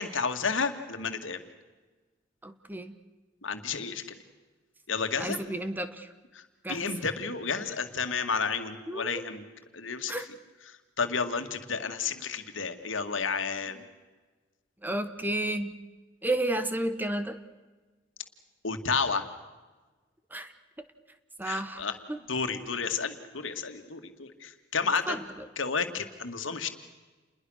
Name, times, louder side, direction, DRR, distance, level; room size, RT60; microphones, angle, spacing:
voice 1, 0.0-1.4 3.4-4.0 4.9-5.4 6.3-6.4 6.7-9.5 9.7-10.3 10.7-13.8 18.6-19.2 21.4-22.0 22.3-25.2 25.6-26.7, left 5 dB, 85° left, 7 dB, 2.2 m, -31 dB
voice 2, 2.4-2.9 5.2-6.1 6.6-6.9 8.9-9.2 10.1-10.3 14.8-15.8 16.2-17.4 20.3-20.5 21.4-21.8 22.1-22.2 25.1-25.2, right 1 dB, 10° right, 10 dB, 1.2 m, -31 dB
29.0 x 21.5 x 6.5 m, 1.3 s
head